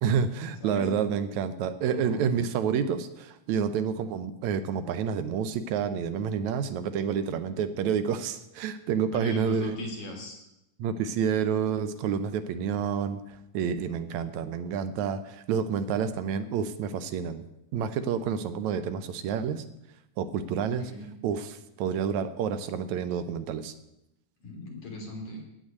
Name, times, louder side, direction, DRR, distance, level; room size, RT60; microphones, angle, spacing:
voice 1, 0.0-9.8 10.8-17.4 17.7-19.6 20.2-20.9 21.2-23.7, right 7 dB, 80° right, 11 dB, 2.1 m, -29 dB
voice 2, 0.6-1.0 1.9-2.3 9.1-10.4 12.9-13.0 20.6-21.1 24.4-25.4, left 2 dB, 50° left, 0 dB, 4.1 m, -39 dB
16.5 x 6.3 x 9.3 m, 0.84 s
omnidirectional pair, 3.3 m